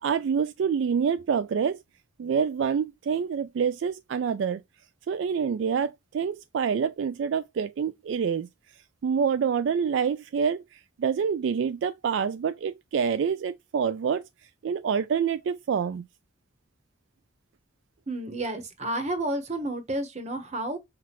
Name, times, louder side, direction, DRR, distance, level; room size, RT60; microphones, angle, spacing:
voice 1, 0.0-1.8 2.2-4.6 5.1-8.5 9.0-14.2 14.6-16.0, right 6 dB, 70° right, 0.3 m, -27 dB
voice 2, 18.1-20.8, right 1 dB, 35° right, 1.0 m, -31 dB
5.7 x 2.4 x 3.0 m
head